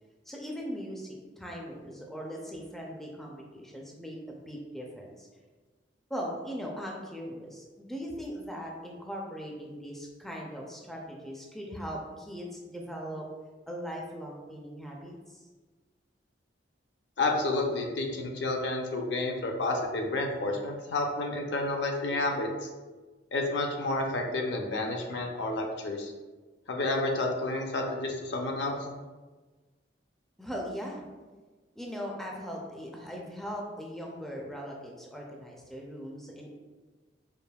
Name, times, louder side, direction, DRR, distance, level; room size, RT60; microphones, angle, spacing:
voice 1, 0.3-5.3 6.1-13.2 13.7-15.4 30.4-31.0 31.8-36.5, equal, ahead, -2 dB, 0.4 m, -39 dB
voice 2, 17.2-22.7 23.3-26.1 26.7-28.8, left 2 dB, 70° left, 2 dB, 0.5 m, -30 dB
4.9 x 2.6 x 2.3 m, 1.3 s
head